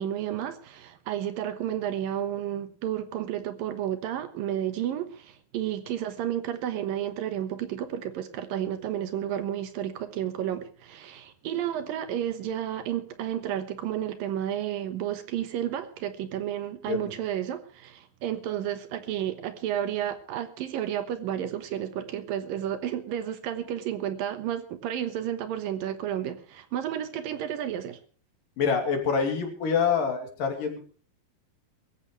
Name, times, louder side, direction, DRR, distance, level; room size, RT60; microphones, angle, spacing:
voice 1, 0.0-28.0, right 10 dB, 70° right, 10 dB, 2.8 m, -31 dB
voice 2, 28.6-30.8, left 6 dB, 65° left, 4 dB, 4.3 m, -26 dB
23.0 x 14.5 x 3.2 m, 0.41 s
omnidirectional pair, 4.3 m